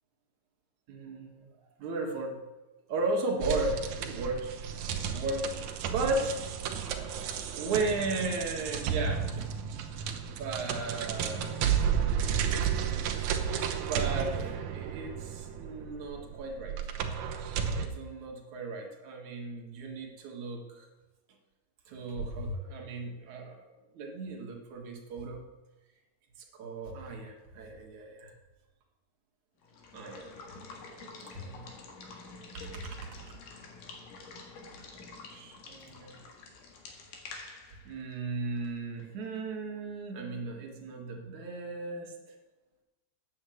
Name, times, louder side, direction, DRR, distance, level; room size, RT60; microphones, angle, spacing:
voice 1, 0.9-1.5 1.8-2.4 2.9-4.5 5.1-5.5 5.9-6.4 6.8-7.0 7.5-9.5 10.3-11.9 13.2-13.3 13.8-16.8 17.7-20.9 21.9-23.7 23.9-25.4 26.5-28.3 29.9-30.3 31.3-31.7 32.5-33.2 35.3-36.2 37.8-42.1, right 3 dB, 55° right, 1 dB, 2.7 m, -35 dB
sound 1, 3.4-17.9, right 8 dB, 75° right, 1.7 m, -32 dB
Water / Water tap faucet / Liquid, 29.6-39.3, left 3 dB, 60° left, 3.1 m, -48 dB
9.6 x 8.6 x 7.7 m, 1.1 s
omnidirectional pair, 4.6 m